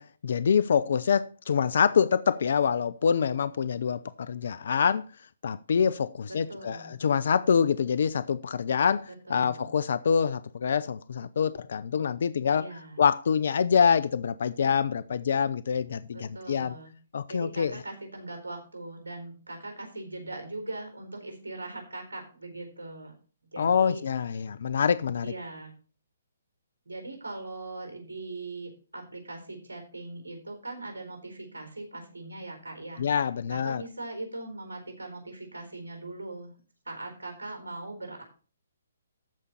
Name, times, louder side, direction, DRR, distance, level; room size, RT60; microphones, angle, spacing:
voice 1, 0.0-5.0 5.4-12.6 13.0-16.7 17.1-17.8 23.6-25.3 33.0-33.8, left 7 dB, 60° left, 0.5 m, -26 dB
voice 2, 6.3-7.0 9.3-9.7 12.5-13.0 16.1-16.9 17.3-23.1 23.5-24.0 25.2-25.7 26.9-33.0 33.5-36.5 36.9-38.2, right 2 dB, 85° right, 4.1 m, -40 dB
14.0 x 5.2 x 4.3 m
hypercardioid pair, 140°, 0 cm